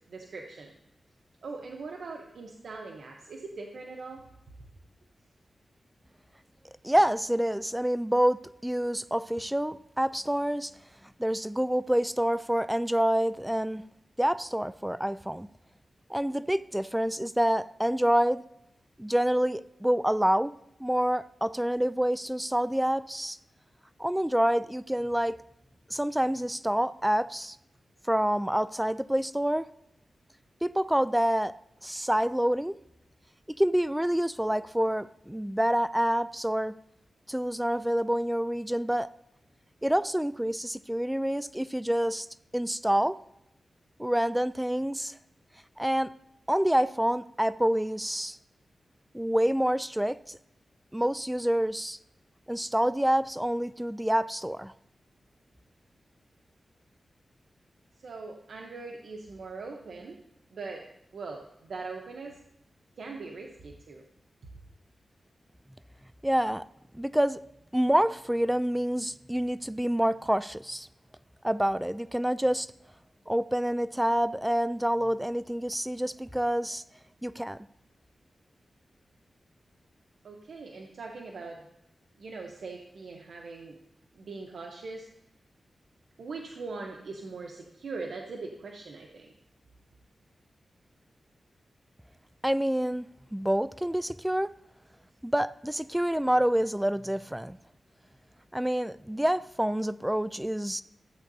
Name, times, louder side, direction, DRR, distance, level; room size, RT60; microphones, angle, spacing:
voice 1, 0.1-0.7 1.4-4.3 4.6-4.7 58.0-60.2 60.5-60.8 61.1-62.4 63.0-64.0 80.2-81.7 82.2-83.7 84.2-85.1 86.2-89.3, right 3 dB, 80° right, 1 dB, 0.8 m, -41 dB
voice 2, 6.8-10.7 11.2-13.8 14.2-15.5 16.1-18.4 19.0-20.5 20.8-23.4 24.0-25.3 25.9-27.6 28.1-29.7 30.6-31.5 31.8-32.8 33.6-36.7 37.3-39.1 39.8-42.3 42.5-43.2 44.0-45.2 45.8-46.1 46.5-48.4 49.1-50.4 50.9-52.0 52.5-54.7 66.2-66.6 66.9-67.4 67.7-70.9 71.4-72.7 73.3-76.8 77.2-77.6 92.4-93.1 93.3-94.5 95.2-97.6 98.5-100.8, equal, 5° right, 15 dB, 0.3 m, -27 dB
14.5 x 8.3 x 2.7 m, 0.80 s
cardioid pair, 75°, 0 cm